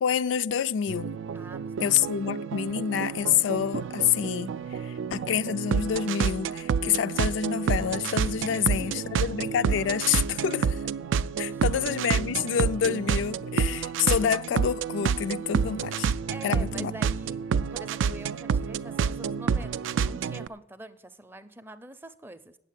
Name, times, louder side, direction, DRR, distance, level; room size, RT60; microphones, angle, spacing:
voice 1, 0.0-1.2 1.8-10.8 11.4-16.1 16.4-16.9, left 8 dB, 70° left, 0.3 m, -27 dB
sound 1, 0.9-20.5, right 6 dB, 80° right, 0.3 m, -29 dB
voice 2, 1.3-2.2 8.4-9.3 11.4-11.6 16.3-17.4 17.7-22.6, right 1 dB, 10° right, 0.4 m, -45 dB
8.9 x 7.5 x 9.0 m
head